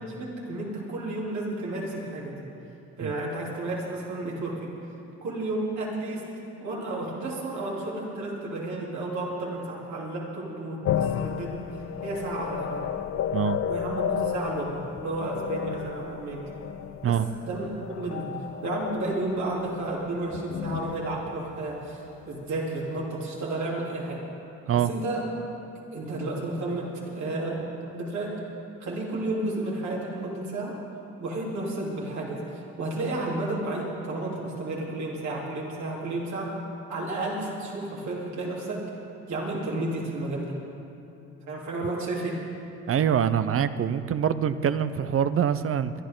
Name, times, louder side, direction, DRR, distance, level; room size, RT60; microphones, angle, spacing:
voice 1, 0.1-2.5 3.0-4.7 5.2-6.3 6.6-12.9 13.7-16.4 17.1-17.2 17.4-18.4 18.6-22.0 22.3-24.2 24.8-25.3 25.9-27.6 27.9-28.4 28.8-30.8 31.2-36.5 36.9-38.8 39.3-40.6 41.5-42.4, right 2 dB, 75° right, -5 dB, 3.6 m, -32 dB
sound 1, 10.8-22.3, left 9 dB, 50° left, 0.6 m, -33 dB
voice 2, 42.9-45.9, right 8 dB, 50° right, 12 dB, 0.7 m, -24 dB
22.5 x 12.0 x 3.9 m, 2.7 s
supercardioid pair, 65°, 29 cm